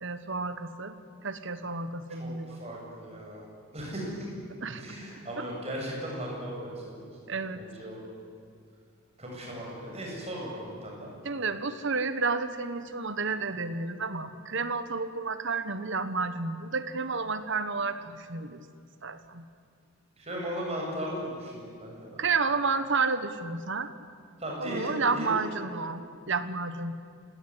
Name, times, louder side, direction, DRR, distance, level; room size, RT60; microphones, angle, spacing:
voice 1, 0.0-1.0 1.2-2.6 4.6-5.0 5.4-5.5 7.3-7.6 11.2-18.6 19.0-19.4 22.2-23.9 24.6-27.0, right 4 dB, 60° right, 11 dB, 1.4 m, -31 dB
voice 2, 2.1-4.3 4.8-8.0 9.2-11.1 20.2-22.2 24.4-25.5, equal, 30° right, -2 dB, 7.9 m, -37 dB
28.0 x 18.0 x 9.9 m, 2.2 s
head